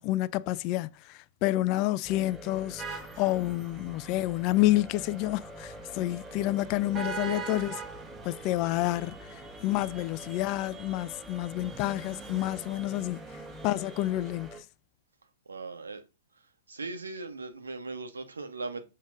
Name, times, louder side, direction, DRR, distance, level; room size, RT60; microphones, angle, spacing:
voice 1, 0.0-7.8 8.2-13.2 13.6-14.6, left 16 dB, 40° left, 0.5 m, -29 dB
sound 1, 2.0-14.6, equal, 5° right, 3.8 m, -46 dB
sound 2, 2.8-14.5, right 6 dB, 25° right, 1.8 m, -44 dB
voice 2, 15.5-16.0 16.7-18.9, right 3 dB, 80° right, 1.6 m, -38 dB
7.4 x 6.4 x 3.7 m
figure-of-eight pair, 110°, 0 cm